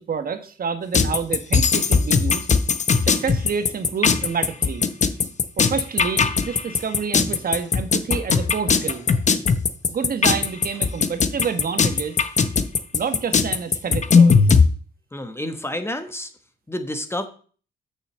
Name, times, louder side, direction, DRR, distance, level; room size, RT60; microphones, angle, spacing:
voice 1, 0.0-2.5 3.0-4.9 5.6-9.1 9.9-12.1 12.9-14.4, right 6 dB, 45° right, 8 dB, 1.4 m, -28 dB
sound 1, 0.9-14.6, left 5 dB, 35° left, 0.9 m, -18 dB
voice 2, 15.1-16.3 16.7-17.3, left 1 dB, 10° left, 9 dB, 1.1 m, -29 dB
6.4 x 6.3 x 7.5 m, 0.42 s
cardioid pair, 90°, 20 cm